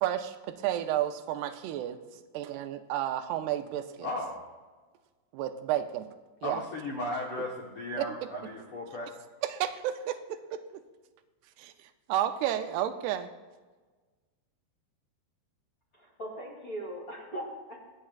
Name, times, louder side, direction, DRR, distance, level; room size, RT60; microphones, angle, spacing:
voice 1, 0.0-4.1 5.3-6.1 6.4-6.6 8.0-8.3 9.4-10.6 11.6-13.3, right 11 dB, 85° right, 9 dB, 2.7 m, -32 dB
voice 2, 4.0-4.4 6.4-9.1, left 1 dB, 80° left, -2 dB, 1.2 m, -36 dB
voice 3, 15.9-17.8, right 1 dB, 30° left, -4 dB, 3.2 m, -40 dB
25.0 x 8.8 x 2.4 m, 1.3 s
omnidirectional pair, 4.7 m